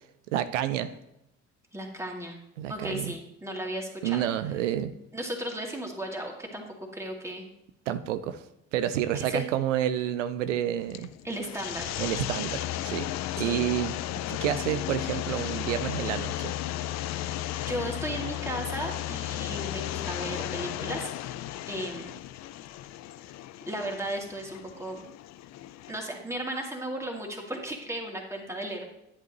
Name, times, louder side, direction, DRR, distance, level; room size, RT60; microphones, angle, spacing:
voice 1, 0.3-0.9 2.6-3.1 4.0-4.9 7.9-8.4 8.7-11.1 12.0-13.1 13.4-13.9 14.3-16.5, right 11 dB, 90° right, 11 dB, 0.5 m, -29 dB
voice 2, 1.7-2.4 2.7-4.3 5.1-7.4 9.1-9.5 11.2-11.9 13.4-13.6 17.2-21.1 21.7-22.1 23.6-25.0 25.9-28.8, right 1 dB, 10° right, 0 dB, 2.3 m, -35 dB
sound 1, 10.8-26.0, left 13 dB, 50° left, 0.5 m, -34 dB
10.5 x 8.3 x 3.0 m, 0.83 s
hypercardioid pair, 60°, 36 cm